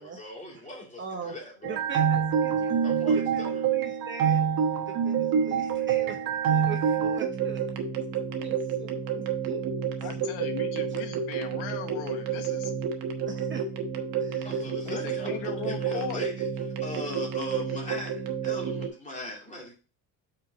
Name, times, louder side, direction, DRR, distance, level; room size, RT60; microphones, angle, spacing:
voice 1, 0.0-1.8 2.8-3.6 14.4-16.5 16.8-19.7, left 1 dB, 15° left, -2 dB, 2.5 m, -39 dB
voice 2, 1.0-1.4 1.6-2.7 3.1-4.5 4.8-7.6 8.4-9.0 9.5-9.6 13.3-13.6 14.3-14.7, right 6 dB, 25° right, 4 dB, 0.7 m, -41 dB
sound 1, 1.6-18.9, right 7 dB, 50° right, 1.1 m, -28 dB
voice 3, 10.0-12.7 14.8-16.2, left 10 dB, 90° left, 7 dB, 1.3 m, -38 dB
5.6 x 4.6 x 4.9 m, 0.35 s
cardioid pair, 160°, 46 cm